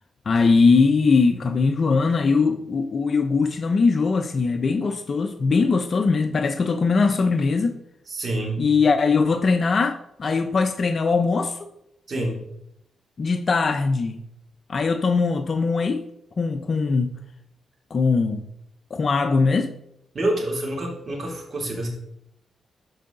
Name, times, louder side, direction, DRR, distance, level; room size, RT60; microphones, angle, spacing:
voice 1, 0.3-7.7 8.6-11.6 13.2-14.2 14.7-16.0 16.4-17.1 17.9-18.4 18.9-19.7, left 4 dB, 50° left, 0.6 m, -21 dB
voice 2, 8.1-8.6 12.1-12.4 20.1-21.9, right 1 dB, 50° right, 3.0 m, -27 dB
13.0 x 4.8 x 3.9 m
cardioid pair, 70°, 0 cm